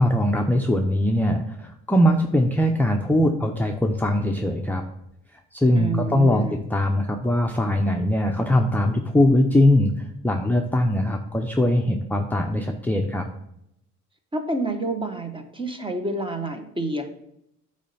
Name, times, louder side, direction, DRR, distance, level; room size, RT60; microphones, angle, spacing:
voice 1, 0.0-4.8 5.3-9.9 10.2-13.3, left 1 dB, 5° left, 2 dB, 0.5 m, -21 dB
voice 2, 5.7-6.6 14.3-17.1, right 2 dB, 15° right, 5 dB, 1.0 m, -28 dB
8.3 x 3.2 x 5.4 m, 0.77 s
cardioid pair, 90°, 30 cm